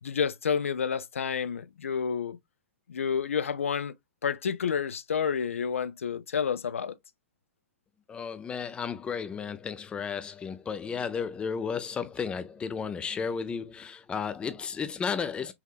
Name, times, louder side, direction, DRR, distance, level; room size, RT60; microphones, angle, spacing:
voice 1, 0.0-2.4 2.9-3.9 4.2-7.0, left 7 dB, 70° left, 0.4 m, -29 dB
voice 2, 8.1-15.5, left 6 dB, 15° left, 0.5 m, -33 dB
5.6 x 2.6 x 2.3 m
figure-of-eight pair, 105°, 7 cm